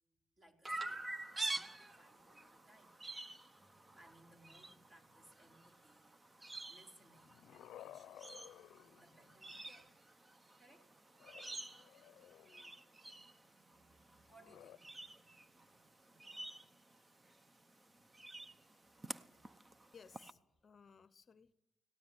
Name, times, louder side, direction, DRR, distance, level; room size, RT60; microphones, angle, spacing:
voice 1, 0.4-1.1 1.4-2.9 3.7-6.2 6.7-8.4 9.0-9.9 10.6-10.9 13.9-14.8 15.6-15.7, right 1 dB, 35° right, 3 dB, 4.4 m, -65 dB
Chirp tweet, 0.7-20.3, right 2 dB, 20° right, 0.9 m, -49 dB
sound 1, 3.6-7.2, right 1 dB, ahead, 6.4 m, -78 dB
sound 2, 7.0-9.6 11.1-12.9 14.3-14.8, left 12 dB, 80° left, 0.6 m, -57 dB
voice 2, 19.9-21.5, left 6 dB, 40° left, 15 dB, 0.7 m, -61 dB
18.5 x 18.0 x 9.0 m, 0.98 s
cardioid pair, 90°, 0 cm